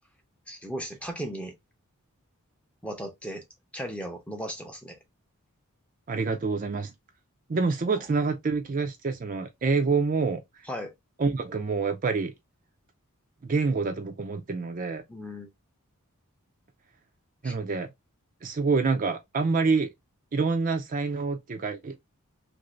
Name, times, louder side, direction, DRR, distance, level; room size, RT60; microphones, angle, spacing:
voice 1, 0.5-1.5 2.8-3.4 3.7-5.0 8.0-8.1 10.6-10.9 15.1-15.5 17.4-17.5, equal, 5° left, 0.6 m, -36 dB
voice 2, 6.1-6.9 7.5-10.4 11.2-12.3 13.5-15.0 17.4-17.9 18.4-19.9 20.3-22.0, right 4 dB, 35° right, 0.4 m, -27 dB
2.9 x 2.6 x 3.0 m
head